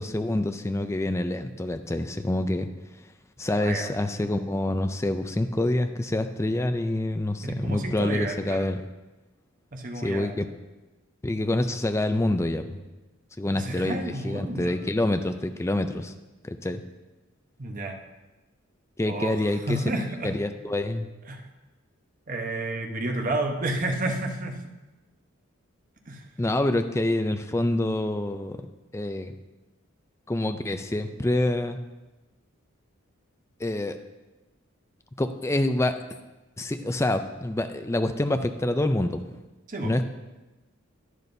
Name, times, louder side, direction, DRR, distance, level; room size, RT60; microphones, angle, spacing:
voice 1, 0.0-2.7 3.4-8.8 10.0-10.5 11.2-12.8 13.4-16.1 16.4-16.8 19.0-19.8 20.2-21.1 26.4-28.6 28.9-29.3 30.3-31.8 33.6-34.0 35.2-36.0 36.6-39.4 39.8-40.0, left 1 dB, 15° left, 8 dB, 0.4 m, -26 dB
voice 2, 7.4-8.7 9.7-10.4 13.5-14.8 17.6-18.0 19.1-20.3 21.3-21.5 22.3-24.7 26.1-26.3 39.7-40.0, right 2 dB, 40° right, 3 dB, 0.9 m, -31 dB
11.0 x 10.0 x 2.7 m, 1.1 s
head